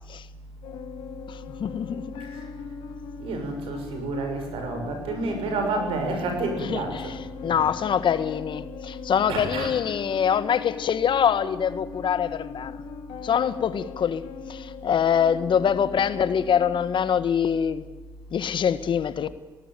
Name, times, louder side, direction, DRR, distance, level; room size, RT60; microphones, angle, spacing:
sound 1, 0.6-17.6, left 6 dB, 85° left, 2.4 m, -40 dB
voice 1, 1.3-2.0 6.6-7.1 7.4-12.8 13.2-14.2 14.5-17.8 18.3-19.3, left 8 dB, 60° left, 1.6 m, -24 dB
voice 2, 3.2-7.6 9.3-9.7, right 3 dB, 85° right, 6.5 m, -30 dB
19.0 x 18.5 x 9.2 m
supercardioid pair, 65°, 9 cm